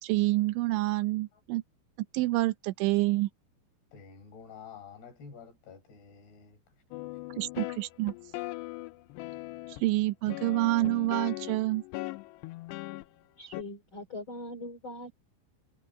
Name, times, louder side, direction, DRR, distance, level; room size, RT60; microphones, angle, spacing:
voice 1, 0.0-1.6 2.1-3.3 7.4-8.1 9.8-11.8, right 19 dB, 80° right, 3.1 m, -27 dB
voice 2, 3.9-7.2, left 6 dB, 55° left, 6.7 m, -50 dB
sound 1, 6.9-9.9 10.3-13.0 13.5-13.6, left 20 dB, 80° left, 2.5 m, -39 dB
voice 3, 13.4-15.1, left 2 dB, 30° left, 2.8 m, -41 dB
omnidirectional pair, 5.5 m